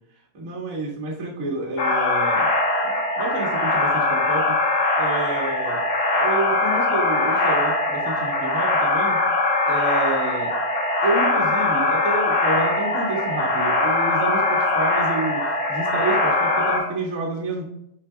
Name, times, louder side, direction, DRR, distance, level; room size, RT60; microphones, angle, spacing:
voice 1, 0.3-2.5 2.8-4.6 5.0-5.8 6.1-9.2 9.7-10.5 11.0-17.6, right 2 dB, 40° right, -3 dB, 1.2 m, -29 dB
sound 1, 1.8-16.8, left 2 dB, 85° left, 4.1 m, -21 dB
10.0 x 5.8 x 2.3 m, 0.77 s
omnidirectional pair, 4.1 m